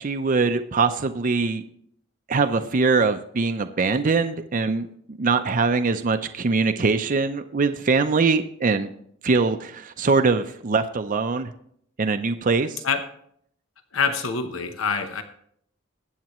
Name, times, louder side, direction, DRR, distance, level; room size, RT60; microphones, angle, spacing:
voice 1, 0.0-1.6 2.3-8.9 9.2-11.5 12.0-12.8, right 4 dB, 40° right, 8 dB, 0.5 m, -22 dB
voice 2, 13.9-15.2, left 5 dB, 80° left, 8 dB, 0.9 m, -25 dB
21.0 x 8.2 x 3.0 m, 0.67 s
head